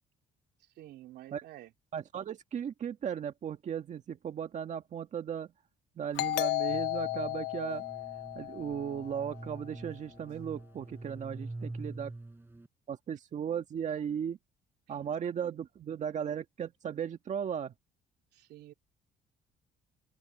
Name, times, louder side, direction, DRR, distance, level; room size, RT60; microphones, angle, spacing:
voice 1, 0.8-1.7 15.0-15.1 18.3-18.7, right 14 dB, 75° right, 2.9 m, -50 dB
voice 2, 1.9-5.5 6.0-7.8 8.3-12.1 12.9-14.4 14.9-17.7, right 8 dB, 45° right, 1.7 m, -36 dB
Doorbell, 6.2-9.5, left 18 dB, 85° left, 0.7 m, -34 dB
sound 1, 6.7-12.7, right 2 dB, 10° right, 7.9 m, -45 dB
open air
cardioid pair, 110°, 17 cm